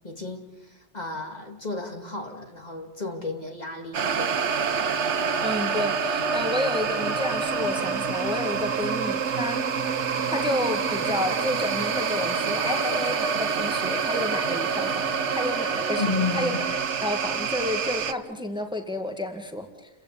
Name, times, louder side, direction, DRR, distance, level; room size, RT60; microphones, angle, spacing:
voice 1, 0.0-4.4 16.0-16.7, left 4 dB, 35° left, 3 dB, 2.5 m, -33 dB
sound 1, 3.9-18.1, right 6 dB, 75° right, 1.3 m, -27 dB
voice 2, 5.4-9.7 10.3-19.9, left 1 dB, 5° right, 5 dB, 1.9 m, -31 dB
29.0 x 16.0 x 8.3 m, 0.99 s
omnidirectional pair, 1.2 m